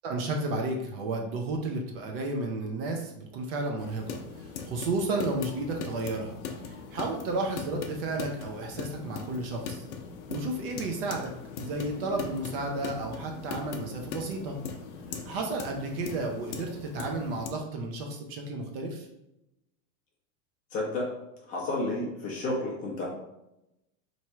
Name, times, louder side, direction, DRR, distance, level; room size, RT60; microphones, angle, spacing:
voice 1, 0.0-6.4 6.6-9.8 10.3-11.3 11.6-14.6 15.3-19.1, right 2 dB, 40° right, 2 dB, 0.6 m, -32 dB
sound 1, 3.8-17.5, left 6 dB, 55° left, 0.7 m, -40 dB
voice 2, 20.7-21.1 21.5-23.0, left 2 dB, 20° left, -4 dB, 0.6 m, -31 dB
3.2 x 2.6 x 4.4 m, 0.88 s
supercardioid pair, 165°, 43 cm